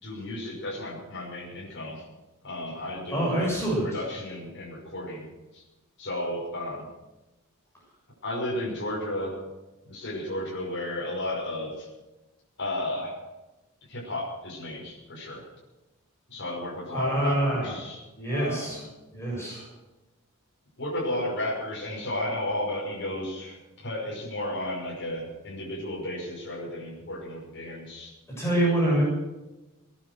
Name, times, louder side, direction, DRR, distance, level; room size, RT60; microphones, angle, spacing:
voice 1, 0.0-2.0 2.4-3.5 3.8-5.3 5.5-5.6 6.0-6.9 8.2-9.4 9.8-11.9 12.6-13.1 13.9-15.5 16.3-18.0 18.3-18.8 20.8-28.1 28.5-28.7, left 1 dB, 55° left, -5 dB, 6.0 m, -33 dB
voice 2, 3.1-4.0 16.9-17.7 18.2-18.8 19.1-19.7 28.4-29.0, right 1 dB, 10° left, -4 dB, 7.5 m, -26 dB
20.0 x 10.5 x 6.5 m, 1.0 s
head